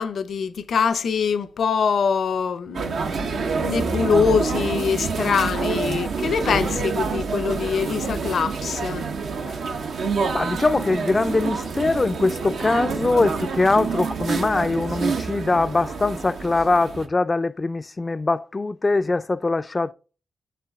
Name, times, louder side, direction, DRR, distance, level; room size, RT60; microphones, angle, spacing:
voice 1, 0.0-9.1, left 6 dB, 70° left, 0.6 m, -24 dB
sound 1, 2.7-17.1, right 5 dB, 75° right, 0.9 m, -27 dB
voice 2, 10.3-19.9, left 3 dB, 35° left, 0.4 m, -22 dB
7.6 x 6.5 x 3.5 m
supercardioid pair, 55°, 0 cm